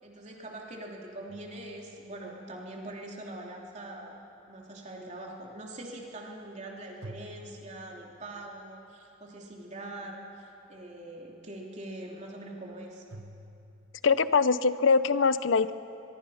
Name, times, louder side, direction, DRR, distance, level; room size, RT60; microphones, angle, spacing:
voice 1, 0.0-4.1 4.5-13.0, right 1 dB, 35° right, -1 dB, 3.2 m, -43 dB
sound 1, 1.3-2.5 7.0-8.6 13.1-14.2, right 1 dB, 90° right, 1.3 m, -49 dB
voice 2, 14.0-15.7, left 5 dB, 75° left, 15 dB, 0.7 m, -23 dB
23.5 x 23.0 x 5.7 m, 3.0 s
head